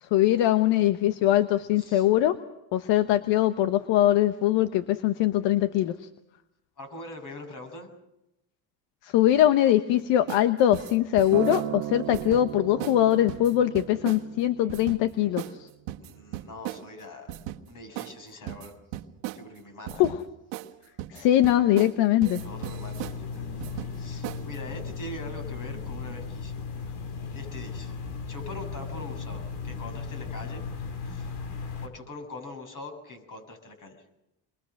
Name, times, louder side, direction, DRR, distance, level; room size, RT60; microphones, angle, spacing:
voice 1, 0.0-2.4 2.7-6.1 9.0-15.7 20.0-20.2 21.1-22.4, left 12 dB, 70° left, 11 dB, 1.2 m, -22 dB
voice 2, 1.8-2.1 6.8-7.9 16.0-18.7 19.3-20.1 22.4-23.5 23.9-26.9 27.3-27.9 28.3-30.6 31.0-31.4 31.8-34.0, left 2 dB, 45° left, 5 dB, 7.9 m, -43 dB
sound 1, 10.3-10.5 10.7-11.7 12.1-12.4 12.8-13.0 13.3-14.2 14.7-15.0 15.4-15.6 15.9-16.8 17.3-17.6 18.0-18.1 18.5-19.4 19.9-20.2 20.5-20.7 21.0-22.0 22.2-23.2 23.6-24.0 24.2-24.6, right 15 dB, 80° right, 1.4 m, -36 dB
Acoustic guitar, 11.3-15.6 16.4-16.5, right 14 dB, 50° right, 0.8 m, -36 dB
sound 2, 22.4-31.9, left 5 dB, 90° left, 3.1 m, -36 dB
28.5 x 22.5 x 6.5 m, 0.89 s
supercardioid pair, 100°, 46 cm